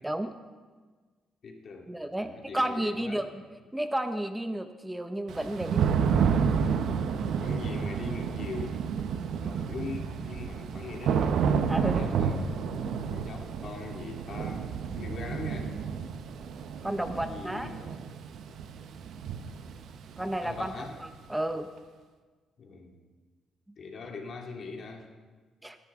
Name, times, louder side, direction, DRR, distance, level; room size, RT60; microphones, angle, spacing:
voice 1, 0.0-0.3 1.9-3.4 3.7-5.8 11.7-12.0 16.8-17.7 20.2-20.7 21.3-21.7 25.6-25.8, right 1 dB, 10° right, 8 dB, 0.7 m, -32 dB
voice 2, 1.4-1.9 2.2-3.3 7.4-8.8 9.4-11.4 11.8-12.5 13.1-14.7 15.0-15.7 17.1-17.9 20.2-21.0 22.6-23.0 23.8-25.1, left 4 dB, 55° left, 2 dB, 2.0 m, -41 dB
Thunder / Rain, 5.3-21.1, right 6 dB, 75° right, 0.8 m, -30 dB
19.5 x 11.0 x 3.6 m, 1.4 s
cardioid pair, 90°, 0 cm